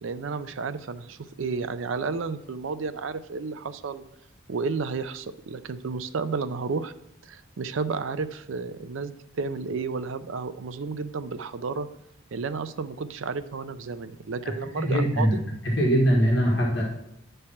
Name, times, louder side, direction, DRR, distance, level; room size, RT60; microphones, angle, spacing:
voice 1, 0.0-4.1 4.5-6.9 7.2-11.9 12.3-15.4, right 4 dB, 80° right, 12 dB, 0.5 m, -32 dB
voice 2, 14.4-15.4 15.6-16.8, equal, 60° left, -2 dB, 1.5 m, -22 dB
9.5 x 3.3 x 5.7 m, 0.79 s
head